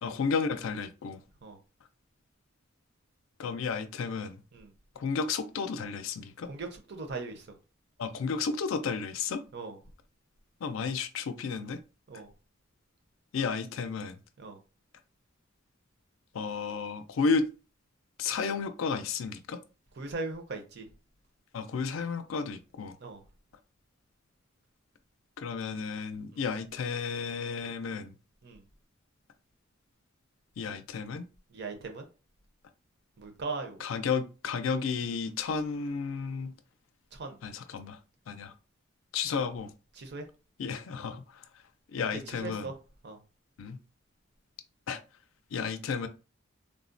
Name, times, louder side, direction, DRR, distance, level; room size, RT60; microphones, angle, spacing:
voice 1, 0.0-1.2 3.4-4.4 5.0-6.5 8.0-9.4 10.6-11.8 13.3-14.2 16.3-17.5 18.2-19.6 21.5-22.9 25.4-28.1 30.6-31.2 33.8-36.5 37.4-38.0 38.3-38.5 39.1-39.7 40.6-41.2 41.9-42.7 43.6-43.8 44.9-45.0 45.5-46.1, left 5 dB, 80° left, 0.4 m, -32 dB
voice 2, 6.5-7.4 9.5-9.8 12.1-12.3 14.4-14.6 20.0-20.9 23.0-23.2 26.3-26.4 28.4-28.6 31.5-32.0 33.2-33.8 37.2-37.4 40.0-40.2 42.1-42.7 43.0-43.2, right 3 dB, 55° right, 0.6 m, -39 dB
3.5 x 2.0 x 2.5 m
head